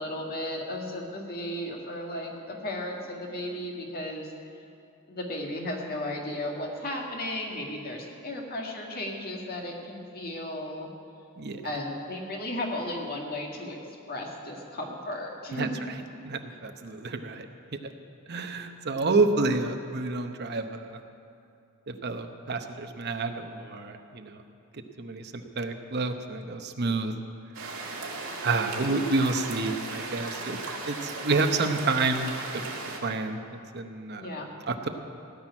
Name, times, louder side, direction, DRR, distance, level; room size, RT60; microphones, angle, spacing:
voice 1, 0.0-4.3 5.1-10.9 11.6-13.8 14.1-15.8 34.2-34.5, left 1 dB, 45° left, 0 dB, 1.9 m, -35 dB
voice 2, 11.4-11.7 15.5-15.7 16.2-17.5 17.7-17.9 18.3-21.0 21.9-24.4 24.7-27.1 28.4-30.6 30.9-32.3 33.0-34.3 34.7-34.9, right 3 dB, 50° right, 6 dB, 0.9 m, -29 dB
sound 1, 27.5-33.0, right 3 dB, 65° right, 2.1 m, -36 dB
17.0 x 6.2 x 9.8 m, 2.5 s
head